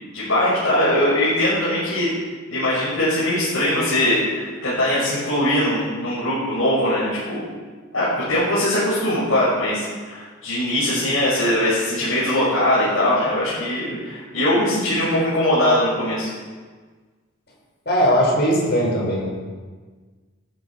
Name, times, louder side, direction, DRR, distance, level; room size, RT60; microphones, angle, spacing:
voice 1, 0.1-2.1 2.5-7.5 7.9-16.3, left 1 dB, 75° left, -10 dB, 6.6 m, -21 dB
voice 2, 17.9-19.3, equal, 55° left, -2 dB, 5.6 m, -19 dB
18.0 x 14.0 x 5.0 m, 1.4 s
head